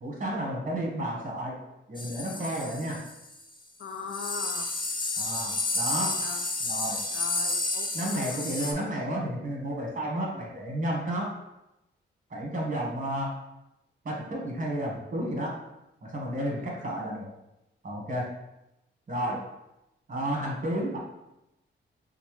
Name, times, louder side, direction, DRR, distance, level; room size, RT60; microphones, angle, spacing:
voice 1, 0.0-1.6 1.9-3.0 5.2-6.2 6.6-7.0 7.9-11.3 12.3-13.3 14.0-15.6 16.0-17.3 17.8-18.3 19.1-19.4 20.1-21.0, right 1 dB, 40° right, -2 dB, 1.2 m, -32 dB
sound 1, 2.0-3.4 3.8-3.9 4.1-8.7, left 3 dB, 25° left, 0.5 m, -31 dB
voice 2, 3.8-4.7 6.2-6.4 7.1-8.4 16.6-16.8, left 5 dB, 70° left, 5 dB, 0.5 m, -40 dB
5.2 x 2.0 x 3.1 m, 0.90 s
cardioid pair, 80°, 21 cm